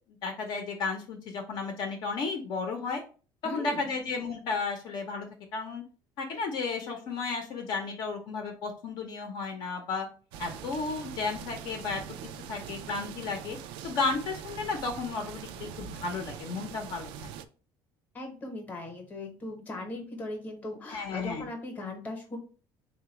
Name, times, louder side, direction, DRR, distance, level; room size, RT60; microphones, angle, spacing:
voice 1, 0.2-3.0 3.5-5.3 5.5-5.8 6.2-10.1 10.4-12.0 12.5-13.6 13.8-17.1 20.9-21.5, left 4 dB, 50° left, 3 dB, 0.6 m, -33 dB
voice 2, 3.4-3.9 18.1-22.4, left 2 dB, 20° left, 3 dB, 0.8 m, -39 dB
sound 1, 10.3-17.4, right 8 dB, 75° right, 0.4 m, -42 dB
3.8 x 2.2 x 4.3 m, 0.37 s
cardioid pair, 180°, 9 cm